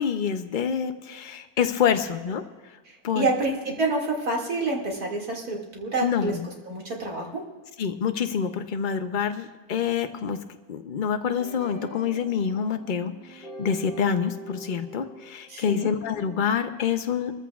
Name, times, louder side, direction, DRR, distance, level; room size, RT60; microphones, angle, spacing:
voice 1, 0.0-2.4 3.0-3.2 6.0-6.5 7.8-10.4 10.7-17.3, left 7 dB, 85° left, 8 dB, 0.4 m, -27 dB
voice 2, 2.9-6.3 6.6-7.4 15.5-15.9, right 2 dB, 75° right, -1 dB, 2.8 m, -28 dB
sound 1, 11.4-16.5, right 2 dB, 40° right, 5.1 m, -42 dB
22.5 x 14.5 x 2.4 m, 1.3 s
omnidirectional pair, 1.6 m